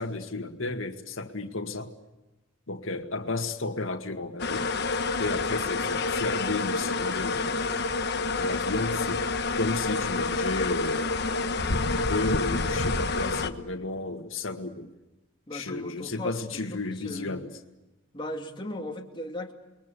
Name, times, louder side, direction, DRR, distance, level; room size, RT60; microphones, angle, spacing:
voice 1, 0.0-1.9 2.7-4.7 5.2-7.5 8.4-9.2 9.6-11.1 11.9-14.9 15.5-17.5, left 2 dB, 90° left, 5 dB, 2.0 m, -33 dB
sound 1, 4.4-13.5, left 3 dB, 55° left, 1.3 m, -28 dB
voice 2, 15.5-16.8 17.0-17.4 18.1-19.5, left 1 dB, 25° left, 1 dB, 2.5 m, -37 dB
29.0 x 22.0 x 8.3 m, 1.0 s
head